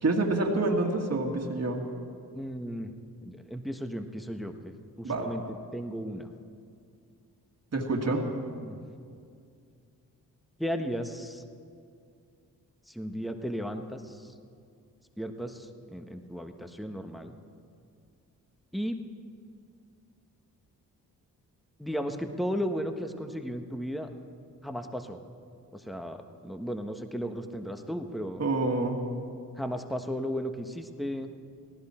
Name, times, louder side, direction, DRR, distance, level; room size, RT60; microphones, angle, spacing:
voice 1, 0.0-1.8 5.0-5.3 7.7-8.3 28.4-29.0, right 2 dB, 40° right, 0 dB, 2.2 m, -27 dB
voice 2, 2.3-2.9 3.2-5.4 5.7-6.3 8.1-8.8 10.6-11.4 12.9-14.3 15.2-17.3 18.7-19.0 21.8-24.1 24.6-25.2 25.7-28.4 29.6-31.3, equal, ahead, 6 dB, 1.3 m, -35 dB
18.5 x 16.0 x 4.5 m, 2.4 s
supercardioid pair, 50°, 38 cm